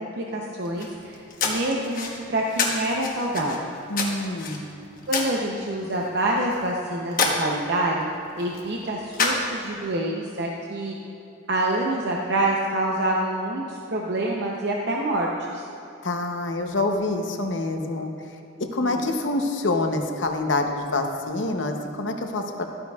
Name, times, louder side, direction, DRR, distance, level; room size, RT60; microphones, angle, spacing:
voice 1, 0.0-3.7 5.1-8.1 8.4-11.0 11.5-15.6 18.8-19.0, right 1 dB, 60° right, -2 dB, 0.7 m, -26 dB
sound 1, 0.6-9.9, left 3 dB, 45° left, 1.1 m, -30 dB
voice 2, 3.9-4.6 16.0-18.4 18.7-22.7, left 2 dB, 65° left, 4 dB, 0.8 m, -26 dB
13.5 x 9.5 x 2.4 m, 2.8 s
head